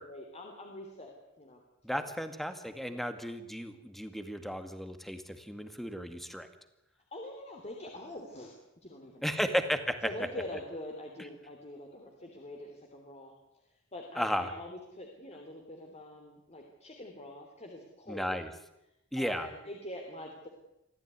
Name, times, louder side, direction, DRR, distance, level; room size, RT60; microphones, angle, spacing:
voice 1, 0.0-1.6 1.9-2.1 2.9-3.1 7.1-8.5 8.8-9.4 10.0-13.4 13.9-18.4 19.2-20.5, left 1 dB, 35° left, 2 dB, 3.2 m, -44 dB
voice 2, 1.8-6.5 9.2-10.1 14.2-14.5 18.1-18.5 19.1-19.5, equal, ahead, 9 dB, 2.0 m, -34 dB
24.5 x 15.5 x 9.6 m, 0.87 s
head